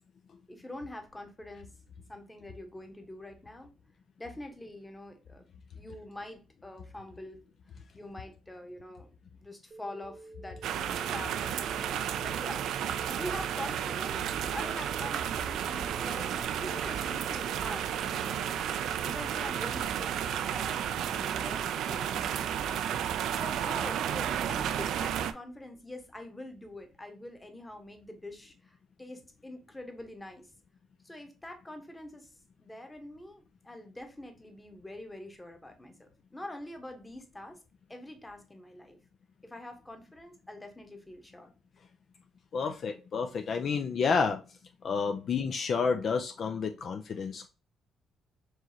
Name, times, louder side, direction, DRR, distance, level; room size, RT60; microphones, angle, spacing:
voice 1, 0.5-1.7 2.1-3.7 4.2-5.4 5.7-7.5 7.9-22.9 23.3-30.5 31.0-32.3 32.6-37.6 37.9-39.0 39.4-41.5, left 1 dB, 15° left, 1.1 m, -45 dB
sound 1, 9.7-19.7, right 2 dB, 35° right, 0.6 m, -49 dB
sound 2, 10.6-25.3, right 9 dB, 80° right, 0.4 m, -32 dB
voice 2, 42.5-44.4 44.8-47.5, left 5 dB, 55° left, 0.4 m, -30 dB
4.6 x 3.1 x 2.7 m
cardioid pair, 90°, 0 cm